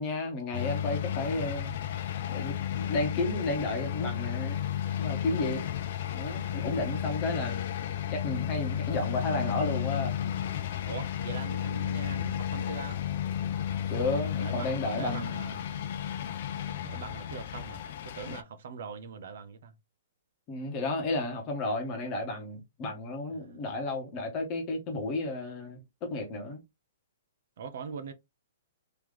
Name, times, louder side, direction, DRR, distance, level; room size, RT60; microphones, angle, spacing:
voice 1, 0.0-1.7 2.3-4.6 5.0-5.6 6.1-7.6 8.1-10.1 13.9-15.3 18.3-18.4 20.5-26.6, left 2 dB, 20° left, 1.2 m, -32 dB
sound 1, 0.5-18.4, left 10 dB, 40° left, 0.4 m, -33 dB
voice 2, 6.6-7.2 10.8-13.0 14.4-15.7 16.8-19.7 23.3-23.6 27.6-28.1, right 6 dB, 50° right, 0.6 m, -42 dB
3.3 x 3.0 x 3.7 m
hypercardioid pair, 175°, 0 cm